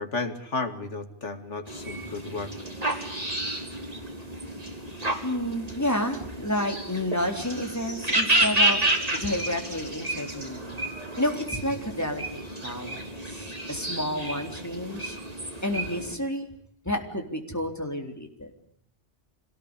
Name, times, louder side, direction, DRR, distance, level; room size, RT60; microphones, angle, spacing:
voice 1, 0.0-2.5, left 3 dB, 80° left, 7 dB, 2.9 m, -33 dB
sound 1, 1.7-16.2, right 1 dB, 30° right, 3.6 m, -30 dB
voice 2, 5.2-8.8 9.1-10.8 11.2-15.2 15.6-16.5 16.8-18.5, left 1 dB, 15° left, 3 dB, 3.9 m, -30 dB
26.5 x 18.5 x 9.9 m, 0.68 s
omnidirectional pair, 1.2 m